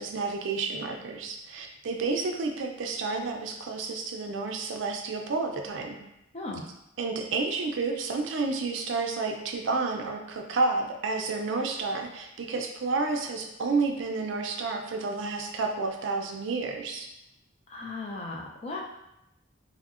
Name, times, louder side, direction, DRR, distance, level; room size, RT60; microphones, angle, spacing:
voice 1, 0.0-6.0 7.0-17.1, right 3 dB, 70° right, 3 dB, 0.4 m, -30 dB
voice 2, 17.7-18.8, left 3 dB, 30° left, -1 dB, 0.3 m, -36 dB
3.6 x 2.0 x 2.4 m, 0.86 s
head